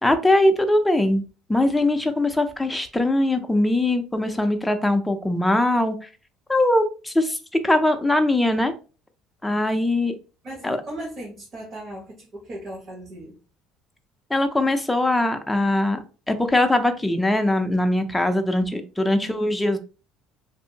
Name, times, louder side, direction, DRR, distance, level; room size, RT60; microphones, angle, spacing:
voice 1, 0.0-1.2 1.5-6.1 6.5-7.4 7.6-8.7 9.4-10.2 10.6-10.8 14.3-16.0 16.3-19.8, left 1 dB, 5° left, 6 dB, 0.4 m, -21 dB
voice 2, 10.4-13.4 19.1-19.5, right 1 dB, 40° right, -4 dB, 1.1 m, -37 dB
2.6 x 2.6 x 2.7 m, 0.34 s
supercardioid pair, 105°, 0 cm